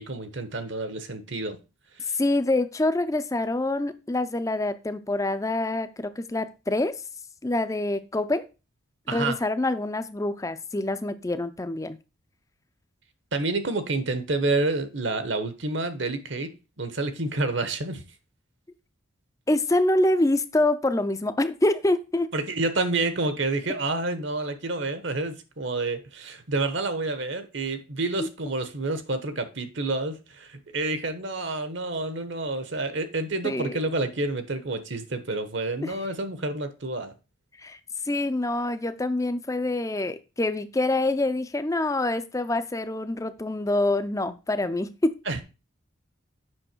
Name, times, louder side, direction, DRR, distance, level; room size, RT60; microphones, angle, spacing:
voice 1, 0.0-1.6 2.0-2.2 9.1-9.4 13.3-16.5 16.8-18.0 22.3-37.1 45.3-45.4, right 2 dB, 60° right, 1.1 m, -29 dB
voice 2, 2.1-6.9 7.4-8.4 9.1-12.0 19.5-22.3 33.4-33.8 35.8-35.9 37.6-37.8 38.0-45.1, left 2 dB, 15° left, 0.5 m, -26 dB
7.7 x 5.9 x 4.5 m
head